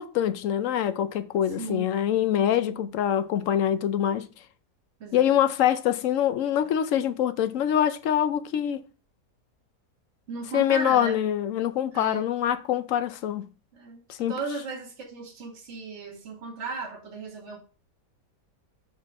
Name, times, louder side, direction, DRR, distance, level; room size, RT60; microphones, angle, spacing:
voice 1, 0.0-4.3 5.1-8.8 10.5-13.5 14.1-14.3, left 10 dB, 65° left, 0.9 m, -24 dB
voice 2, 1.6-2.0 2.6-2.9 5.0-5.2 10.3-11.2 11.9-12.2 13.7-14.0 14.3-17.6, right 4 dB, 45° right, 1.9 m, -36 dB
6.5 x 4.0 x 6.1 m
omnidirectional pair, 1.7 m